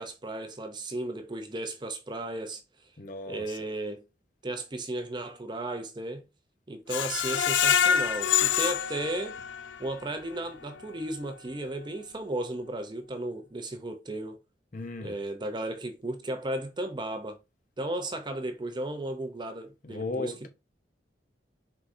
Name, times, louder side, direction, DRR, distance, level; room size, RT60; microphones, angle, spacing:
voice 1, 0.0-2.6 3.3-4.0 4.4-6.2 6.7-9.4 9.8-14.4 15.0-17.4 17.8-20.5, right 1 dB, 25° right, 0.6 m, -35 dB
voice 2, 3.0-3.6 14.7-15.2 19.8-20.5, left 3 dB, 45° left, 0.8 m, -36 dB
Screech, 6.9-9.9 10.3-10.4 10.8-10.9, left 8 dB, 85° left, 0.4 m, -26 dB
4.6 x 3.9 x 2.6 m
head